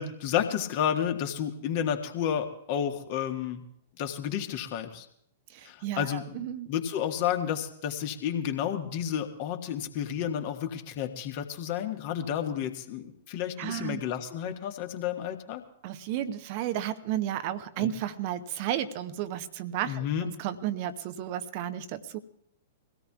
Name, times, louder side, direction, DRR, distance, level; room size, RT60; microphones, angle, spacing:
voice 1, 0.0-3.6 4.0-5.1 5.6-15.6 17.8-17.9 19.9-20.3, left 9 dB, 45° left, 6 dB, 1.5 m, -31 dB
voice 2, 5.5-6.7 13.6-14.0 15.8-22.2, right 11 dB, 40° right, 11 dB, 0.8 m, -33 dB
23.5 x 17.0 x 2.4 m, 0.69 s
figure-of-eight pair, 105°, 0 cm